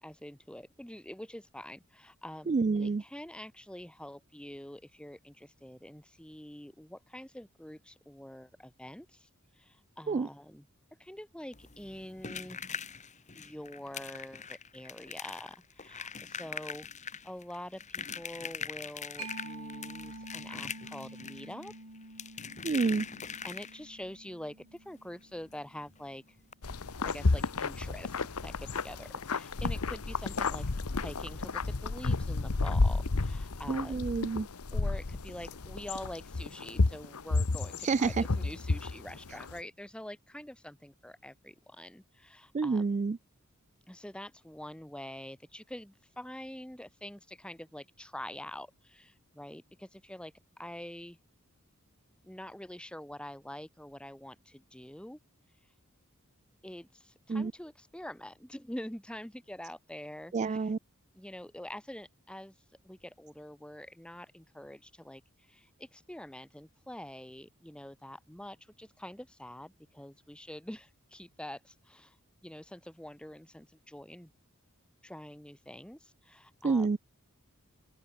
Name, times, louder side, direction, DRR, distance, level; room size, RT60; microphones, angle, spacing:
voice 1, 0.0-9.3 9.6-10.6 11.0-12.6 13.3-16.9 17.2-21.7 23.4-26.2 27.0-30.6 31.0-34.1 34.7-42.8 43.9-51.2 52.2-55.2 56.6-60.7 61.1-62.5 62.8-65.2 65.5-72.2 72.4-74.3 75.0-77.0, left 1 dB, 5° left, 1.0 m, -46 dB
voice 2, 2.5-3.0 10.1-10.3 22.6-23.1 33.7-34.5 37.8-38.2 42.5-43.2 57.3-57.5 60.3-60.8 76.6-77.0, right 4 dB, 30° right, 0.3 m, -28 dB
sound 1, 11.5-24.0 25.5-25.6 25.9-26.0 26.4-26.5, left 6 dB, 35° left, 2.2 m, -42 dB
Mallet percussion, 19.2-26.5, right 2 dB, 75° right, 5.9 m, -48 dB
sound 2, 26.6-39.6, left 3 dB, 85° left, 1.0 m, -31 dB
open air
head